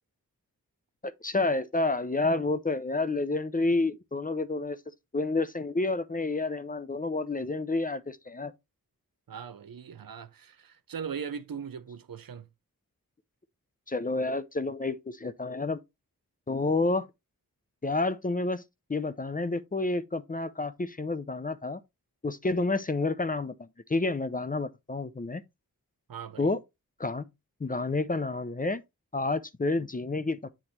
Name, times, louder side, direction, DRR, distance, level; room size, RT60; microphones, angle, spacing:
voice 1, 1.0-4.8 5.1-8.5 13.9-15.8 16.5-17.1 17.8-18.6 18.9-21.8 22.2-25.4 26.4-26.6 27.0-27.3 27.6-28.8 29.1-30.5, left 3 dB, 25° left, 0.6 m, -29 dB
voice 2, 9.3-12.5 26.1-26.5, right 7 dB, 70° right, 0.7 m, -39 dB
7.9 x 3.1 x 4.2 m
cardioid pair, 50°, 36 cm